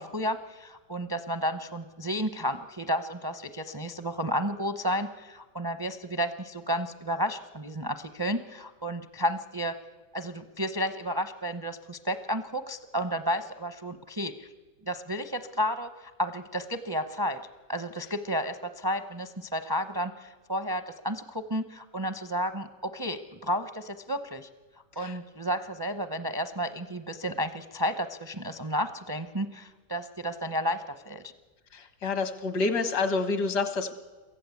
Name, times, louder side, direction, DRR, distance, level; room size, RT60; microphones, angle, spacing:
voice 1, 0.0-9.8 10.1-14.5 14.9-17.4 17.7-24.5 25.0-31.2, equal, 25° right, 11 dB, 0.4 m, -32 dB
voice 2, 31.7-33.9, left 3 dB, 80° left, 10 dB, 2.1 m, -28 dB
23.5 x 15.0 x 8.4 m, 1.3 s
omnidirectional pair, 1.8 m